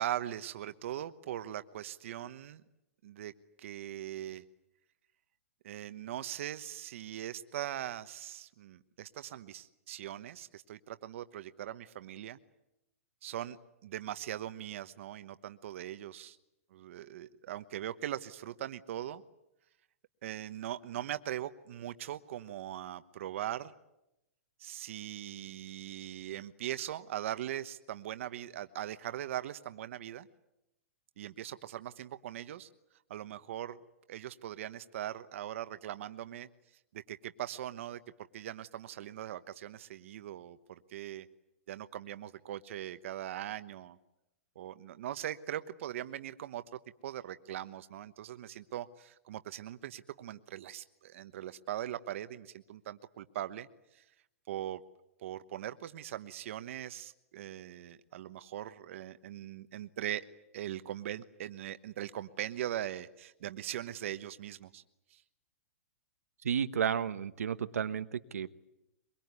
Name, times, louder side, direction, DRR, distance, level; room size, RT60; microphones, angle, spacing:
voice 1, 0.0-2.6 3.0-3.3 3.6-4.4 5.6-12.4 13.2-13.6 13.8-16.4 16.7-19.2 20.2-23.7 24.6-30.3 31.2-32.7 33.1-33.8 34.1-36.5 36.9-38.0 38.3-41.3 41.7-44.0 44.5-46.6 47.0-53.7 53.9-54.0 54.5-54.8 55.2-60.3 60.5-64.8 65.1-65.2, right 12 dB, 60° right, 11 dB, 1.1 m, -40 dB
voice 2, 66.4-68.6, right 8 dB, 85° right, 11 dB, 1.2 m, -32 dB
23.5 x 23.0 x 9.6 m, 0.89 s
hypercardioid pair, 140°, 8 cm